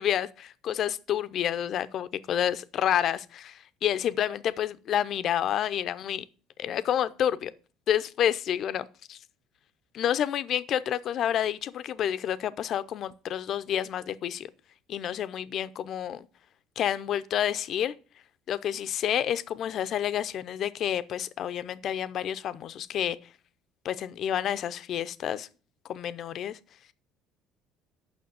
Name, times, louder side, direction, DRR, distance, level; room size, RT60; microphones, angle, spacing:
voice 1, 0.0-6.2 6.6-7.5 7.9-9.2 9.9-14.5 14.9-16.3 16.8-17.9 18.5-23.2 23.8-25.5 25.9-26.6, left 10 dB, 55° left, 0.6 m, -29 dB
7.1 x 5.8 x 7.5 m
supercardioid pair, 75°, 0 cm